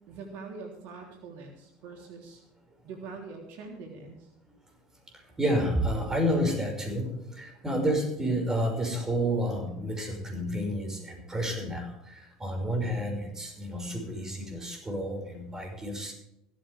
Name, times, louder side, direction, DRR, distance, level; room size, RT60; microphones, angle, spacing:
voice 1, 0.1-2.4 2.8-4.3, right 4 dB, 65° right, 2 dB, 3.5 m, -43 dB
voice 2, 5.1-16.1, equal, 15° right, 3 dB, 5.7 m, -30 dB
16.5 x 13.5 x 3.5 m, 0.81 s
supercardioid pair, 90°, 3 cm